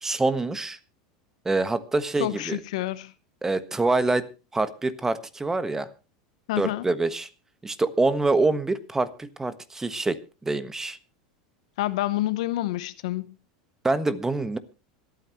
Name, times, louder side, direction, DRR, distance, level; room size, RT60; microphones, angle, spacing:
voice 1, 0.0-0.8 1.4-2.6 3.4-4.2 4.5-5.9 6.6-7.3 7.6-11.0 13.8-14.6, right 3 dB, 10° right, 1.4 m, -25 dB
voice 2, 2.2-3.1 6.5-6.8 11.8-13.3, left 15 dB, 70° left, 0.9 m, -28 dB
25.5 x 9.2 x 3.1 m
hypercardioid pair, 105°, 4 cm